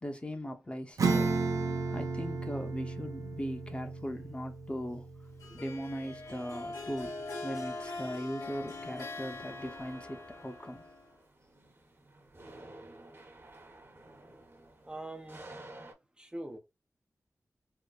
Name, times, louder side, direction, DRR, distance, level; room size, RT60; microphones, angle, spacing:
voice 1, 0.0-1.3 1.9-5.1 5.5-7.1 7.4-10.8, equal, 20° left, 0.8 m, -39 dB
Acoustic guitar / Strum, 1.0-7.0, right 4 dB, 75° right, 0.6 m, -34 dB
Harp, 5.4-11.2, left 2 dB, 80° left, 1.3 m, -42 dB
sound 1, 8.7-15.9, right 2 dB, 40° right, 1.0 m, -53 dB
voice 2, 14.9-15.5 16.2-16.6, right 1 dB, 15° right, 0.6 m, -42 dB
3.7 x 2.1 x 2.4 m
wide cardioid pair, 80°, 6 cm